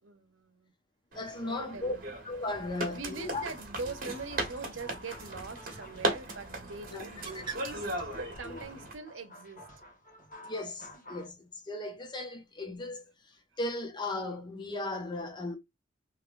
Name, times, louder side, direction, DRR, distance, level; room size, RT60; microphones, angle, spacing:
voice 1, 0.0-0.7 1.4-2.0 2.9-9.7, right 3 dB, 75° right, 0.9 m, -42 dB
voice 2, 1.1-1.9 2.3-3.4 6.9-7.0 8.4-8.6 10.4-15.6, left 2 dB, 25° left, 0.7 m, -36 dB
running outside, 1.1-8.9, right 1 dB, 45° right, 1.3 m, -38 dB
Bird, 2.5-8.6, right 5 dB, 25° right, 1.1 m, -50 dB
sound 1, 3.3-11.3, left 1 dB, 40° left, 1.4 m, -51 dB
3.2 x 3.2 x 2.5 m
head